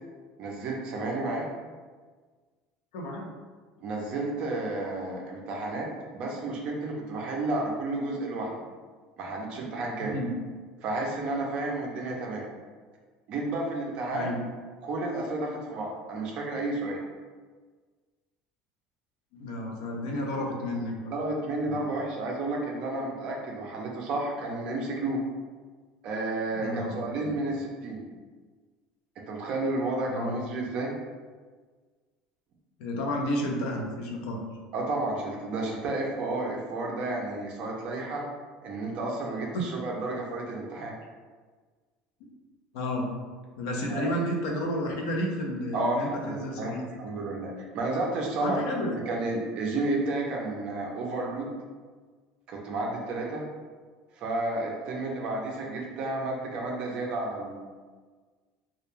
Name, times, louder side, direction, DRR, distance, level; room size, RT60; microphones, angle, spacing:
voice 1, 0.4-1.5 3.8-5.9 6.1-8.6 9.2-10.2 10.8-12.4 13.3-14.3 14.8-17.0 21.1-25.2 26.0-28.0 29.3-30.9 34.7-38.2 38.6-40.9 43.9-44.1 45.7-46.7 47.0-48.6 49.1-51.5 52.5-53.4 54.2-57.6, right 2 dB, 35° right, -1 dB, 0.4 m, -31 dB
voice 2, 2.9-3.3 10.1-10.3 14.1-14.4 19.3-21.1 21.7-21.8 26.5-27.0 30.1-30.3 32.8-34.4 42.7-43.1 43.6-47.0 48.4-49.0, left 1 dB, 75° left, 0 dB, 0.5 m, -31 dB
2.2 x 2.1 x 3.0 m, 1.5 s
cardioid pair, 175°, 3 cm